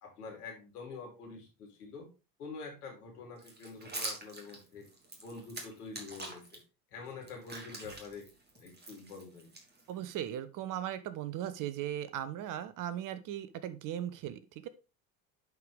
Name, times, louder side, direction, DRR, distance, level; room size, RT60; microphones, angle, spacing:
voice 1, 0.0-2.1 2.4-4.9 5.2-6.6 6.9-8.3 8.5-9.5, left 4 dB, 75° left, 0 dB, 3.6 m, -46 dB
sound 1, 3.4-6.6 7.0-10.1, right 2 dB, 20° right, 2.7 m, -45 dB
voice 2, 9.9-14.7, right 11 dB, 40° right, 14 dB, 1.0 m, -38 dB
10.5 x 4.8 x 3.5 m, 0.30 s
figure-of-eight pair, 70°, 47 cm